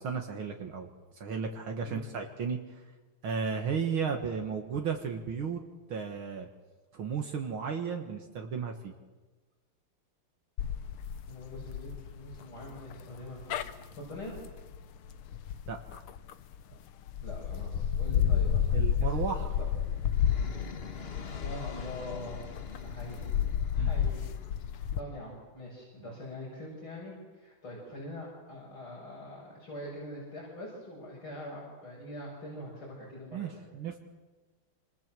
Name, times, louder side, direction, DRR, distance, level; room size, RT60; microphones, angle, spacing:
voice 1, 0.0-2.8 3.2-5.6 5.9-6.5 6.9-8.9 15.7-16.0 18.7-19.5 23.8-23.9 33.3-34.0, right 6 dB, 70° right, 3 dB, 2.5 m, -34 dB
sound 1, 10.6-16.6 17.1-25.0, left 8 dB, 90° left, 2.0 m, -31 dB
voice 2, 11.3-14.4 17.2-19.7 21.4-22.4 22.8-23.3 23.7-24.2 24.8-33.7, left 1 dB, 70° left, -5 dB, 8.0 m, -44 dB
sound 2, 19.3-25.3, left 4 dB, 30° left, 1.3 m, -46 dB
27.5 x 27.0 x 7.7 m, 1.3 s
omnidirectional pair, 2.4 m